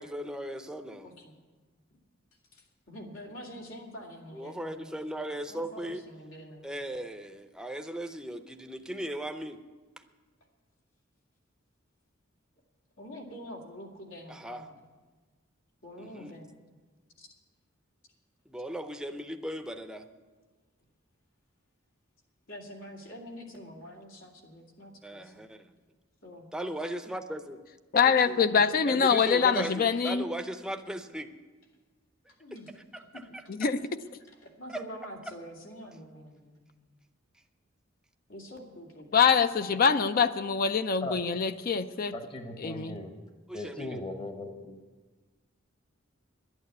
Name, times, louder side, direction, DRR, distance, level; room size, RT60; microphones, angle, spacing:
voice 1, 0.0-1.1 4.3-6.0 6.6-9.6 14.3-14.7 16.0-16.4 18.5-20.1 25.0-25.7 26.5-27.6 28.8-31.3 32.9-33.4 34.7-34.8 43.5-44.0, right 1 dB, 5° right, 6 dB, 0.6 m, -37 dB
voice 2, 1.0-1.3 2.5-5.0 5.5-6.7 13.0-14.8 15.8-16.5 17.2-17.3 22.5-25.4 26.2-26.5 28.0-28.9 32.4-32.7 33.1-33.3 33.7-33.8 34.3-36.6 38.3-39.2, equal, 80° left, 1 dB, 2.4 m, -46 dB
voice 3, 27.9-30.3 33.6-33.8 39.1-42.1 42.6-43.0, left 6 dB, 45° left, 11 dB, 0.5 m, -24 dB
voice 4, 42.1-43.1 43.5-44.8, left 2 dB, 25° left, 5 dB, 1.0 m, -38 dB
11.5 x 9.0 x 8.3 m, 1.3 s
head